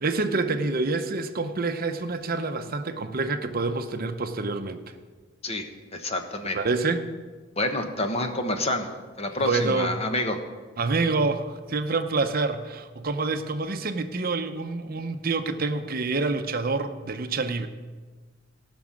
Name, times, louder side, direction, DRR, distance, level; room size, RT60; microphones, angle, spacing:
voice 1, 0.0-4.8 6.5-7.1 9.4-10.0 10.8-17.7, right 3 dB, 50° right, 8 dB, 0.7 m, -27 dB
voice 2, 5.9-6.6 7.6-10.4, left 1 dB, 30° left, 5 dB, 1.2 m, -28 dB
17.0 x 6.1 x 7.5 m, 1.4 s
head